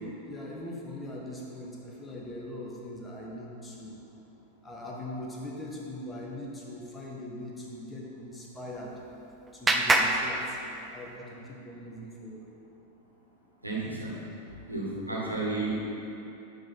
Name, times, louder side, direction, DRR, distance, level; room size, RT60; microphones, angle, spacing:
voice 1, 0.3-4.0 4.6-9.0 9.5-10.6 10.9-12.5 14.9-15.4, left 1 dB, 15° left, -3 dB, 1.3 m, -41 dB
Clapping, 8.5-11.2, right 2 dB, 10° right, 0.6 m, -29 dB
voice 2, 13.6-14.1 14.7-15.7, right 3 dB, 85° right, -5 dB, 1.6 m, -32 dB
9.0 x 5.2 x 4.5 m, 2.9 s
figure-of-eight pair, 90°, 0 cm